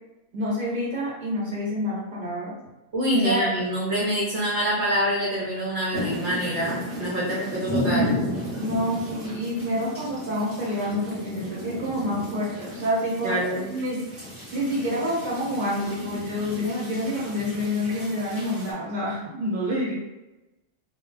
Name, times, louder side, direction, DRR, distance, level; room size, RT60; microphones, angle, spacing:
voice 1, 0.3-2.6 3.2-3.5 8.6-14.0 14.5-19.9, equal, 45° right, -6 dB, 1.2 m, -28 dB
voice 2, 2.9-8.1 13.2-13.7, equal, 65° right, -6 dB, 1.0 m, -25 dB
sound 1, 5.9-18.7, equal, 15° right, 0.7 m, -33 dB
2.2 x 2.2 x 3.7 m, 1.0 s
omnidirectional pair, 1.3 m